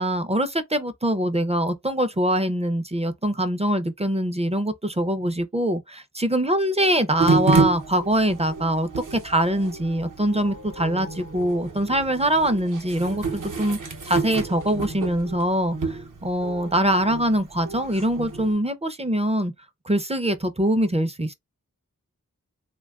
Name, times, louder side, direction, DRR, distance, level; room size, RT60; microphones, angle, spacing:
voice 1, 0.0-19.5 19.9-21.3, right 1 dB, 20° right, 0.4 m, -23 dB
sound 1, 7.2-18.5, right 4 dB, 65° right, 0.7 m, -29 dB
3.2 x 2.2 x 2.3 m
wide cardioid pair, 45°, 34 cm